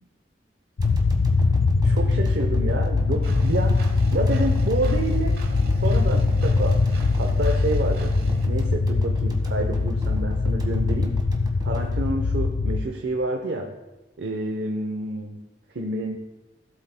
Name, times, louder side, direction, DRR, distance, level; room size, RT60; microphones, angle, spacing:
sound 1, 0.8-12.8, left 3 dB, 55° left, 0.4 m, -22 dB
sound 2, 0.8-13.0 13.4-13.5, equal, 25° right, 1.4 m, -40 dB
voice 1, 1.8-3.8 4.1-5.4 5.8-6.8 7.2-8.1 8.4-11.2 11.6-13.7 14.2-15.4 15.7-16.2, right 2 dB, 75° right, 2 dB, 0.9 m, -28 dB
Engine, 3.2-8.5, right 1 dB, 55° right, 1.1 m, -35 dB
17.0 x 8.1 x 2.2 m, 1.1 s
head